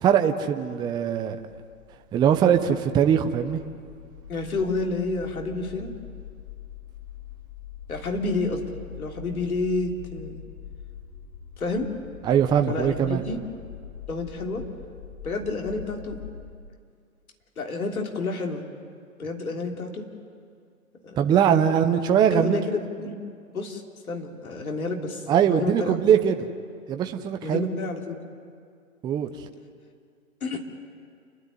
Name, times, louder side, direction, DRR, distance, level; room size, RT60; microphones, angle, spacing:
voice 1, 0.0-1.4 2.1-3.6 12.2-13.2 21.2-22.6 25.3-26.5 26.9-27.6 29.0-29.5, right 8 dB, 10° right, 7 dB, 0.6 m, -21 dB
sound 1, 1.4-16.6, left 10 dB, 35° left, 3.5 m, -43 dB
voice 2, 4.3-5.9 7.9-8.6 9.0-10.4 11.6-11.9 12.7-13.4 14.1-14.7 15.2-16.2 17.6-18.6 19.2-20.1 21.0-21.2 21.7-21.8 22.3-23.1 23.5-23.8 24.1-25.2 25.5-25.9 27.4-28.2 30.4-30.6, left 3 dB, 80° left, 1 dB, 3.4 m, -29 dB
30.0 x 10.5 x 9.6 m, 2.2 s
hypercardioid pair, 125°, 42 cm